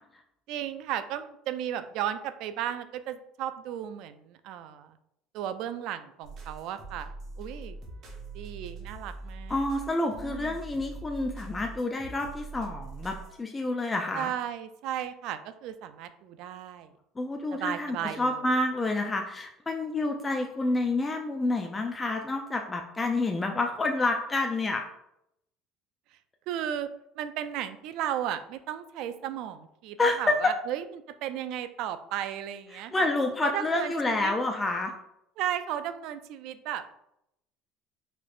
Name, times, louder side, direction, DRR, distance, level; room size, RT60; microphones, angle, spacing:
voice 1, 0.5-5.0 5.3-7.1 7.4-7.8 8.3-9.6 10.2-10.6 14.1-16.9 17.5-18.5 26.5-26.9 27.2-30.8 31.2-33.1 33.4-34.3 35.4-36.9, right 10 dB, 65° right, 11 dB, 0.3 m, -35 dB
sound 1, 6.2-13.4, right 3 dB, 50° right, 0.9 m, -43 dB
voice 2, 9.5-14.3 17.2-24.8 30.0-30.5 32.7-34.9, left 2 dB, 15° left, 3 dB, 0.3 m, -28 dB
4.3 x 2.9 x 2.4 m, 0.78 s
cardioid pair, 120°, 0 cm